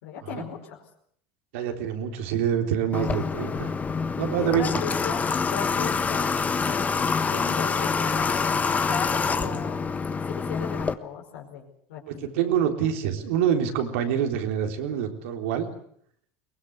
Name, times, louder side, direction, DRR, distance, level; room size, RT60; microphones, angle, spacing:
voice 1, 0.0-0.8 2.3-3.7 4.4-5.2 5.5-6.4 6.7-6.9 7.2-9.8 10.3-12.5, left 8 dB, 80° left, -1 dB, 5.3 m, -37 dB
voice 2, 1.5-3.7 4.2-4.7 9.4-9.5 12.1-15.7, right 9 dB, 80° right, 4 dB, 3.8 m, -26 dB
Water / Water tap faucet, 2.9-10.9, left 5 dB, 20° left, 1.4 m, -26 dB
23.0 x 19.5 x 8.2 m, 0.65 s
supercardioid pair, 100°, 7 cm